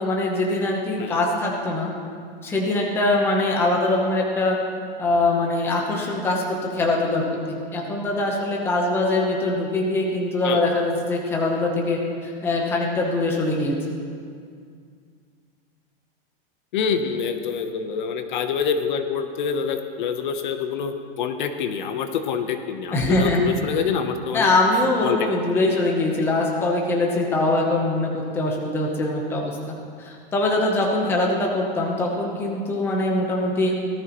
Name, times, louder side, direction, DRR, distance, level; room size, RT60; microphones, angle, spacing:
voice 1, 0.0-1.9 2.4-4.6 5.0-6.4 6.7-14.0 22.9-23.8 24.3-33.7, left 2 dB, 10° left, -1 dB, 0.9 m, -23 dB
voice 2, 16.7-24.5 25.0-25.7, left 6 dB, 55° left, 7 dB, 0.9 m, -26 dB
18.0 x 13.0 x 3.0 m, 2.3 s
supercardioid pair, 175°, 29 cm